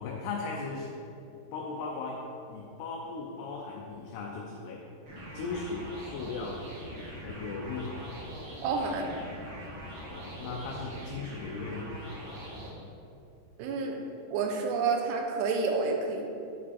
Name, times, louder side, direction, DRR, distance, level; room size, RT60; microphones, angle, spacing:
voice 1, 0.0-0.9 1.5-4.9 5.3-6.7 7.1-8.1 10.0-12.0, left 4 dB, 80° left, -1 dB, 2.6 m, -37 dB
sound 1, 5.1-12.7, equal, 55° right, 1.6 m, -42 dB
voice 2, 8.6-9.1 13.6-14.0 14.3-16.3, right 4 dB, 90° right, 2 dB, 2.9 m, -29 dB
7.9 x 5.0 x 4.2 m, 2.7 s
omnidirectional pair, 4.8 m